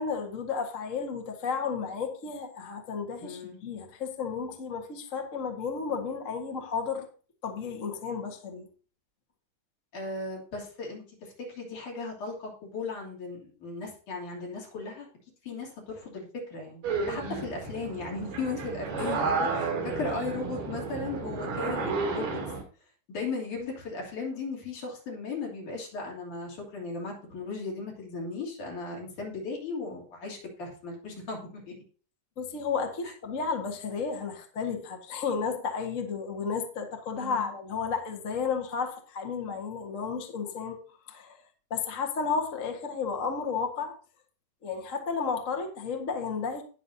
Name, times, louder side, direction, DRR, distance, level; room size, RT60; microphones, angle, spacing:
voice 1, 0.0-7.1 7.4-8.7 19.0-19.1 21.6-22.1 32.4-40.8 41.1-41.4 41.7-43.9 44.6-46.6, left 5 dB, 35° left, 3 dB, 1.3 m, -33 dB
voice 2, 3.2-3.6 9.9-15.1 15.4-16.8 17.1-19.7 20.0-22.4 23.1-31.7 37.2-37.5, left 3 dB, 70° left, -2 dB, 4.5 m, -36 dB
sound 1, 16.8-22.6, right 4 dB, 90° right, 4.8 m, -32 dB
19.0 x 6.4 x 2.8 m, 0.40 s
omnidirectional pair, 3.7 m